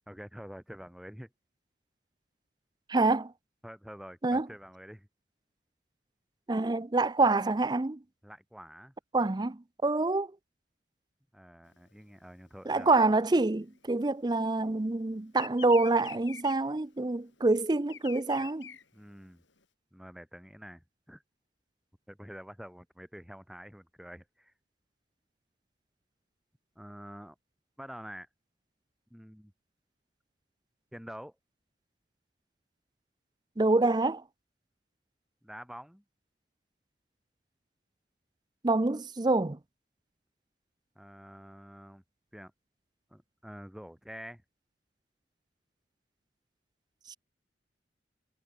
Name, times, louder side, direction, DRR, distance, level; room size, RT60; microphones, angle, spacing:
voice 1, 0.1-1.3 3.6-5.1 8.2-8.9 11.3-12.9 18.9-19.4 19.9-21.2 22.1-24.5 26.7-27.3 27.8-28.3 29.1-29.5 30.9-31.4 35.4-36.0 40.9-42.0 42.3-42.5 43.1-44.4, equal, ahead, 1.4 m, -47 dB
voice 2, 2.9-3.3 4.2-4.5 6.5-8.0 9.1-10.3 12.7-18.7 33.6-34.2 38.6-39.6 47.1-47.2, right 2 dB, 25° right, 0.5 m, -26 dB
Bird vocalization bird call bird song, 11.7-14.6 14.9-19.6, left 9 dB, 85° left, 7.1 m, -48 dB
head